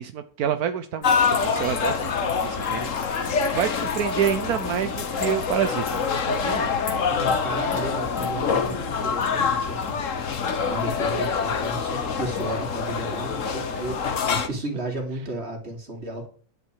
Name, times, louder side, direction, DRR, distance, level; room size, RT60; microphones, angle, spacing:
voice 1, 0.0-6.7 10.5-10.8 13.7-13.9, right 9 dB, 80° right, 9 dB, 1.3 m, -29 dB
sound 1, 1.0-12.9, left 2 dB, 80° left, 4.6 m, -42 dB
sound 2, 1.0-14.5, left 5 dB, 60° left, 1.5 m, -26 dB
voice 2, 7.1-10.2 10.7-14.0 14.3-16.3, right 2 dB, 45° right, 2 dB, 3.4 m, -33 dB
12.0 x 9.5 x 4.8 m, 0.44 s
omnidirectional pair, 1.6 m